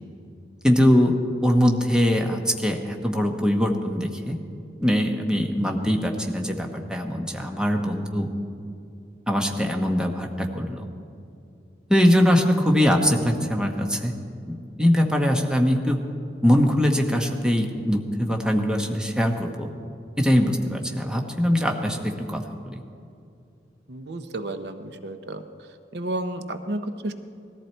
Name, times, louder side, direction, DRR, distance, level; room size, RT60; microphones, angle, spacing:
voice 1, 0.6-1.2 1.4-4.4 4.8-8.3 9.3-10.9 11.9-14.1 14.5-16.0 16.4-19.7 20.2-22.8, equal, 5° right, 2 dB, 1.1 m, -22 dB
voice 2, 23.9-25.4 25.9-27.1, right 1 dB, 70° right, 9 dB, 0.7 m, -31 dB
19.5 x 14.0 x 4.4 m, 2.5 s
head